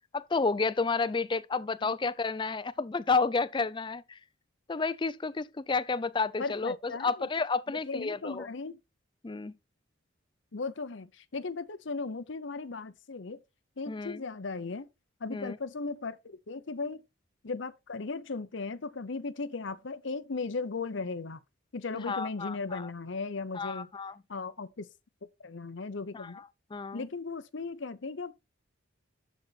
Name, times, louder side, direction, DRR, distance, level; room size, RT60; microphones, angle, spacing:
voice 1, 0.1-4.2 4.7-8.5 9.2-9.5 13.9-14.2 15.3-15.6 21.9-22.9 23.5-24.1 26.1-26.5 26.7-27.1, left 4 dB, 25° left, 0.4 m, -31 dB
voice 2, 6.4-7.3 7.7-8.8 10.5-13.4 13.8-14.9 15.2-17.0 17.4-21.4 21.7-23.9 24.3-24.9 25.4-26.4 26.9-28.3, left 4 dB, 65° left, 0.7 m, -37 dB
12.0 x 4.1 x 4.1 m
head